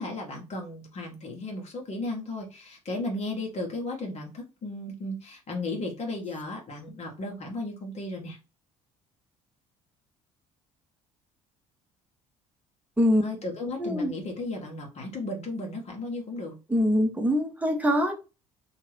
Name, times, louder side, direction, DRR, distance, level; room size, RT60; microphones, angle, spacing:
voice 1, 0.0-8.4 13.2-16.5, left 2 dB, 40° left, 1.0 m, -35 dB
voice 2, 13.8-14.1 16.7-18.1, equal, 10° right, 1.0 m, -23 dB
2.8 x 2.4 x 3.1 m
figure-of-eight pair, 55°, 18 cm